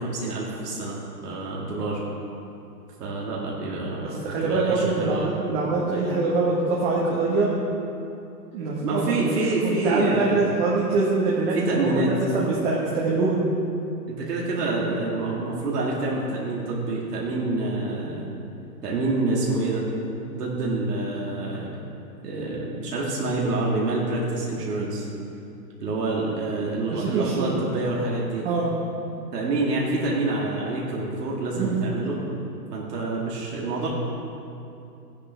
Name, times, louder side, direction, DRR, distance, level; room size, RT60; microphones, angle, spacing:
voice 1, 0.0-2.0 3.0-5.3 8.8-10.4 11.5-12.1 14.1-18.3 18.8-19.8 20.3-21.7 22.2-25.1 25.8-28.4 29.3-32.2 32.7-33.9, right 2 dB, 70° right, -4 dB, 2.5 m, -27 dB
voice 2, 4.0-7.5 8.5-9.4 9.6-13.4 14.6-14.8 26.9-27.6 28.4-28.7 31.6-31.8, right 3 dB, 35° right, -5 dB, 1.6 m, -24 dB
14.5 x 9.8 x 3.5 m, 2.7 s
hypercardioid pair, 155°, 49 cm